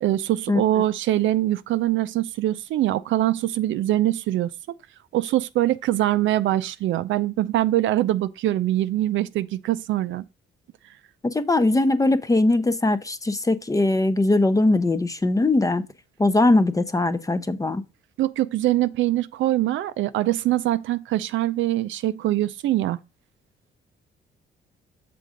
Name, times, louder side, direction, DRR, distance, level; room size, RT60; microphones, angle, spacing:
voice 1, 0.0-4.5 5.1-10.2 18.2-23.0, right 14 dB, 75° right, 0.5 m, -23 dB
voice 2, 11.2-15.8 16.2-17.8, left 2 dB, 15° left, 0.7 m, -20 dB
6.8 x 3.7 x 5.1 m
cardioid pair, 90°, 20 cm